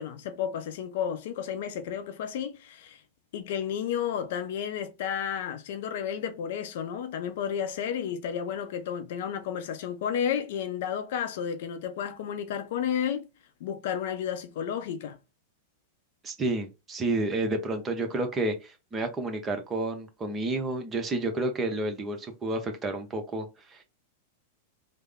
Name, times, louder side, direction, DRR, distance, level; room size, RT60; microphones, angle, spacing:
voice 1, 0.0-3.0 3.3-13.3 13.6-15.2, left 8 dB, 60° left, 0.6 m, -32 dB
voice 2, 16.2-23.8, right 2 dB, 25° right, 0.9 m, -30 dB
3.4 x 2.1 x 3.5 m
hypercardioid pair, 100°, 0 cm